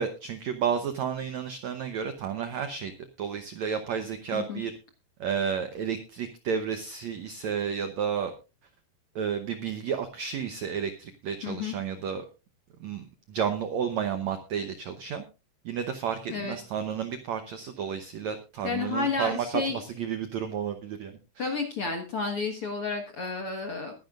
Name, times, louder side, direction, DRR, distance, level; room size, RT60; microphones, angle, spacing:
voice 1, 0.0-2.9 3.2-4.7 5.2-8.3 9.2-12.3 12.8-15.2 15.7-21.7, right 7 dB, 80° right, 8 dB, 1.6 m, -32 dB
voice 2, 11.4-11.8 16.3-16.6 18.6-19.8 21.4-23.9, left 4 dB, 55° left, 4 dB, 1.6 m, -31 dB
21.0 x 10.5 x 2.5 m, 0.30 s
omnidirectional pair, 4.4 m